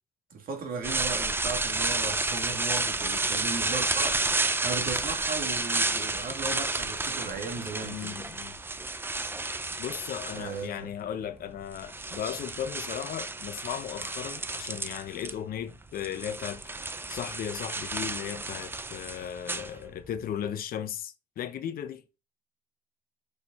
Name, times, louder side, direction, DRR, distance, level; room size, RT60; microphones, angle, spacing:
voice 1, 0.3-4.4 4.6-8.2 10.3-10.9, right 4 dB, 60° right, 2.8 m, -36 dB
sound 1, 0.8-10.7 11.5-15.3 15.6-20.2, right 3 dB, 15° right, 0.7 m, -31 dB
voice 2, 7.8-8.6 9.8-16.6 17.1-22.0, left 9 dB, 60° left, 1.0 m, -36 dB
6.5 x 5.1 x 5.5 m
cardioid pair, 110°, 17 cm